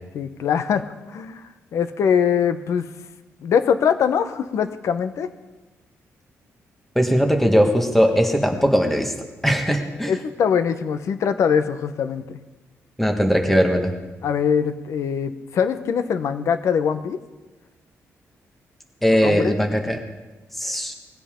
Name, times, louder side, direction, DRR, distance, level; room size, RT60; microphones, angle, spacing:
voice 1, 0.1-1.4 1.7-2.9 3.4-5.3 10.1-12.2 14.2-17.2 19.2-19.6, left 7 dB, 70° left, 10 dB, 1.1 m, -22 dB
voice 2, 7.0-9.1 9.4-10.1 13.0-13.9 19.0-20.0 20.5-20.9, equal, 5° left, 3 dB, 1.8 m, -19 dB
20.5 x 16.0 x 3.8 m, 1.2 s
cardioid pair, 135°, 5 cm